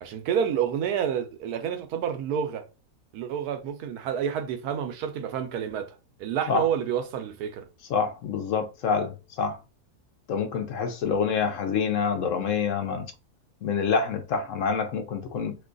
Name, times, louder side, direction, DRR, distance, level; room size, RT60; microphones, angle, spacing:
voice 1, 0.0-2.6 3.1-7.7, right 8 dB, 85° right, 1.2 m, -29 dB
voice 2, 7.9-9.6 10.3-13.1 13.6-15.6, left 6 dB, 70° left, 0.8 m, -27 dB
2.9 x 2.3 x 3.7 m
omnidirectional pair, 1.6 m